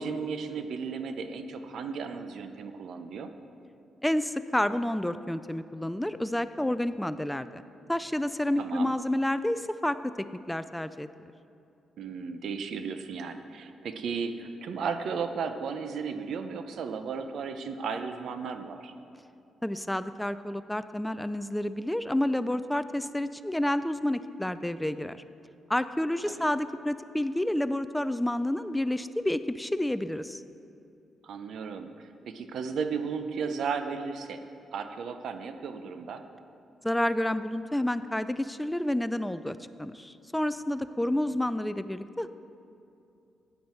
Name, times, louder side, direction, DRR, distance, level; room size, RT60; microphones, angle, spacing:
voice 1, 0.0-3.3 8.6-8.9 12.0-18.9 26.3-26.4 31.2-34.4 34.7-36.2 41.0-41.4, right 5 dB, 70° right, 8 dB, 0.7 m, -35 dB
voice 2, 4.0-7.6 7.9-11.1 19.6-25.2 25.7-30.4 36.8-42.3, left 1 dB, 5° left, 13 dB, 0.3 m, -29 dB
14.0 x 9.4 x 4.5 m, 2.7 s
cardioid pair, 100°, 0 cm